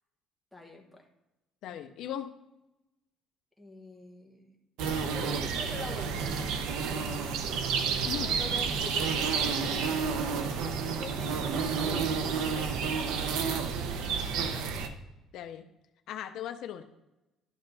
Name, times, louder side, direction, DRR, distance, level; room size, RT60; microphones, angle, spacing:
voice 1, 0.5-1.1 3.6-4.6 5.0-6.3 8.1-12.0 12.5-13.3, left 2 dB, ahead, 3 dB, 1.1 m, -45 dB
voice 2, 1.6-2.3 8.1-8.4 15.3-15.7 16.1-16.8, left 10 dB, 55° left, 7 dB, 0.6 m, -38 dB
sound 1, 4.8-14.9, right 5 dB, 80° right, 0.9 m, -30 dB
11.5 x 5.3 x 4.0 m, 0.99 s
cardioid pair, 180°, 0 cm